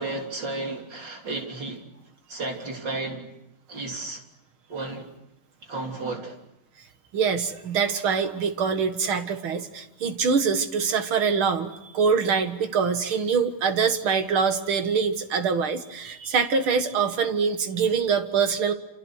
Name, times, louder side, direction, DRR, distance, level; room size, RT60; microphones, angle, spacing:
voice 1, 0.0-1.9 2.3-3.3 3.7-4.2 4.7-5.1 5.7-6.4, right 2 dB, 60° right, 2 dB, 4.1 m, -33 dB
voice 2, 7.1-18.7, right 6 dB, 85° right, 8 dB, 2.5 m, -24 dB
28.5 x 27.5 x 6.5 m, 0.87 s
omnidirectional pair, 2.2 m